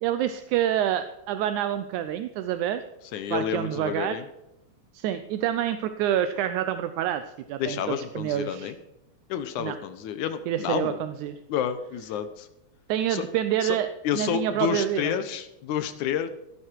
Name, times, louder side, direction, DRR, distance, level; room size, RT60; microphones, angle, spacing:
voice 1, 0.0-2.8 3.3-4.2 4.9-7.2 7.5-8.7 9.6-9.8 10.5-11.4 12.9-13.9 14.1-15.1, right 11 dB, 80° right, 10 dB, 2.1 m, -27 dB
voice 2, 3.1-4.3 7.6-8.8 9.3-11.0 11.5-12.5 13.1-13.3 13.6-13.8 14.0-16.3, left 9 dB, 80° left, 10 dB, 2.4 m, -29 dB
16.0 x 11.0 x 4.6 m, 0.89 s
omnidirectional pair, 3.5 m